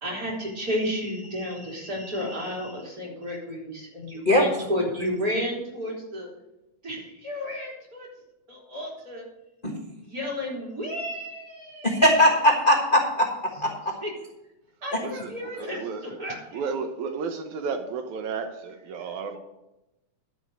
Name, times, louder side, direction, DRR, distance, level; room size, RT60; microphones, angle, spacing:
voice 1, 0.0-6.3 6.8-8.1 8.5-9.2 10.0-12.0 14.0-14.1 14.8-16.6 19.3-19.4, equal, 30° right, 3.9 m, -32 dB
voice 2, 11.8-13.3 13.6-13.7 14.9-15.0, left 1 dB, 35° left, 0.8 m, -19 dB
voice 3, 15.0-16.0 16.5-19.4, right 5 dB, 80° right, 2.2 m, -33 dB
11.5 x 5.2 x 7.8 m
omnidirectional pair, 3.4 m